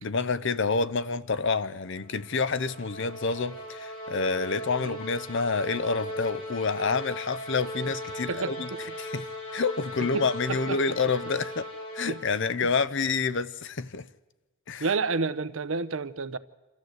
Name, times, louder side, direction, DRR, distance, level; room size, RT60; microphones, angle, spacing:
voice 1, 0.0-8.7 9.0-11.7 11.9-14.1 14.7-14.9, left 4 dB, 55° left, 0.7 m, -28 dB
sound 1, 2.0-12.6, equal, 80° left, 4.5 m, -38 dB
voice 2, 8.3-8.8 10.1-10.8 12.1-12.2 14.8-16.4, right 4 dB, 60° right, 0.8 m, -30 dB
26.5 x 13.5 x 8.0 m
head